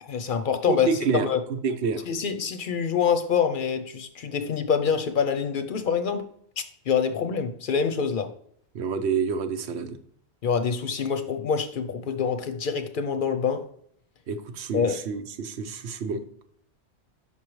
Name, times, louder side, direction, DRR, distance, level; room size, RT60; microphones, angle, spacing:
voice 1, 0.0-0.9 1.1-1.4 2.1-6.3 6.6-8.3 10.4-13.6 14.7-15.0, left 6 dB, 60° left, 0.7 m, -26 dB
voice 2, 0.7-2.1 8.7-10.0 14.3-16.2, right 5 dB, 85° right, 0.9 m, -28 dB
6.1 x 5.6 x 3.1 m
omnidirectional pair, 1.1 m